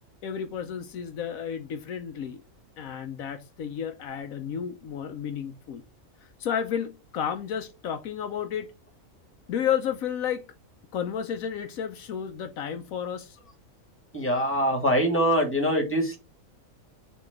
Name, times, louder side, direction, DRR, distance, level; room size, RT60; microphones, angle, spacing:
voice 1, 0.2-2.4 2.8-5.8 6.2-8.7 9.5-10.4 10.9-13.4, left 8 dB, 80° left, 1.2 m, -32 dB
voice 2, 14.1-16.2, equal, 10° left, 2.0 m, -23 dB
6.8 x 3.1 x 5.1 m
omnidirectional pair, 1.5 m